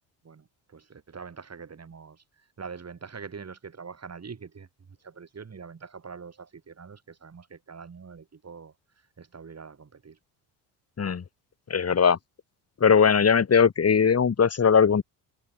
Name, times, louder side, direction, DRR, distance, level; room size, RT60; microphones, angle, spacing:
voice 1, 0.2-10.2, right 5 dB, 35° right, 5.8 m, -44 dB
voice 2, 11.7-12.2 12.8-15.0, left 6 dB, 35° left, 2.3 m, -20 dB
cardioid pair, 85°, 45 cm